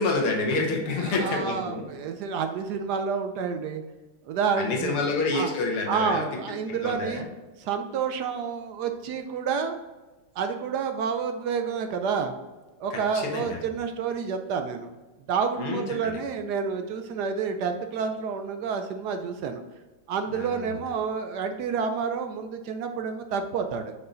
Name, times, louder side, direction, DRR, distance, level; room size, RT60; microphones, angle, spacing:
voice 1, 0.0-1.9 4.6-6.3 6.7-7.3 12.9-13.6 15.6-16.1 20.3-20.8, left 3 dB, 90° left, 0 dB, 2.2 m, -28 dB
voice 2, 1.0-3.8 4.3-5.0 5.3-5.5 5.9-7.2 7.6-9.8 10.4-12.3 12.8-14.9 15.3-19.6 20.1-23.9, right 6 dB, 75° right, 6 dB, 0.9 m, -29 dB
5.8 x 5.5 x 3.8 m, 1.2 s
omnidirectional pair, 2.3 m